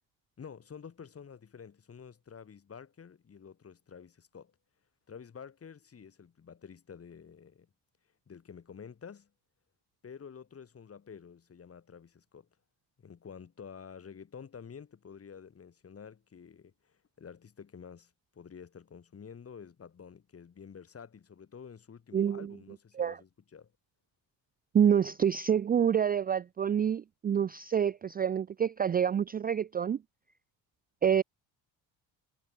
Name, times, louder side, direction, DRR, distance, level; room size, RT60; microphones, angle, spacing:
voice 1, 0.4-4.5 5.1-7.7 8.3-9.3 10.0-12.5 13.0-23.7, left 6 dB, 35° left, 7.7 m, -49 dB
voice 2, 22.1-22.5 23.0-23.2 24.7-30.0 31.0-31.2, right 8 dB, 25° right, 0.4 m, -27 dB
cardioid pair, 120°, 38 cm